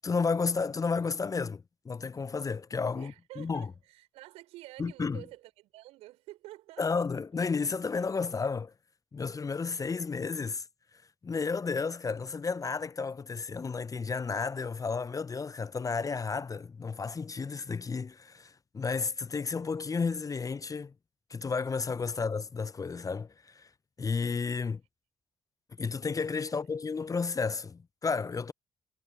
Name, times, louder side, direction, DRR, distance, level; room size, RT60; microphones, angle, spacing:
voice 1, 0.0-3.7 4.8-5.2 6.8-8.7 9.1-10.6 11.2-20.9 21.3-23.7 24.0-24.8 25.8-28.5, left 5 dB, 30° left, 0.7 m, -32 dB
voice 2, 3.0-7.0 22.1-22.2 26.5-26.6, right 17 dB, 75° right, 4.4 m, -49 dB
hypercardioid pair, 40°, 11 cm